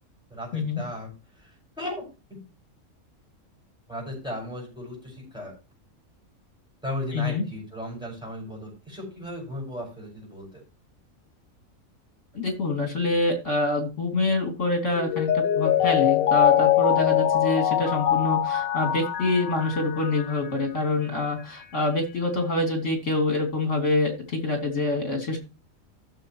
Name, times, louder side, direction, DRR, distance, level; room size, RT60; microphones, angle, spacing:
voice 1, 0.3-1.1 1.4-2.0 2.3-2.4 3.9-5.5 6.8-10.6, left 1 dB, 5° right, -1 dB, 6.6 m, -36 dB
voice 2, 7.1-7.4 12.3-25.4, left 2 dB, 60° left, 3 dB, 3.2 m, -26 dB
Mallet percussion, 15.0-20.5 20.8-20.9, left 11 dB, 90° left, 1.3 m, -23 dB
16.0 x 6.9 x 3.1 m, 0.30 s
omnidirectional pair, 1.4 m